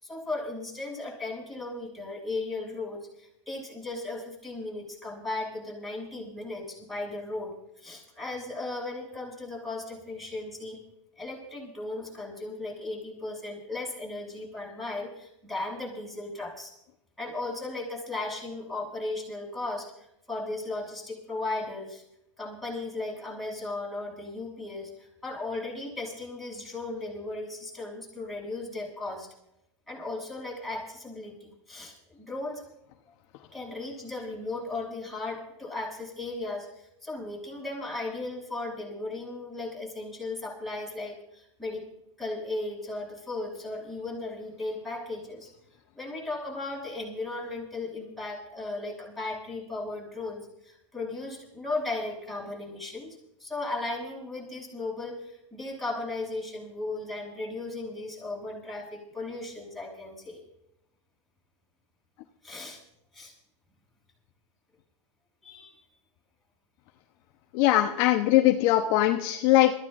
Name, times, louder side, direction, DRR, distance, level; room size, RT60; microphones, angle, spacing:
voice 1, 0.0-10.8 11.2-16.7 17.2-22.0 22.4-29.3 29.9-32.6 33.5-41.9 42.2-45.5 46.0-60.4 62.4-62.8 63.1-63.3 65.4-65.8, left 2 dB, ahead, -5 dB, 7.0 m, -36 dB
voice 2, 67.5-69.7, left 14 dB, 50° left, 5 dB, 1.0 m, -21 dB
26.5 x 15.0 x 2.6 m, 0.85 s
hypercardioid pair, 120°, 16 cm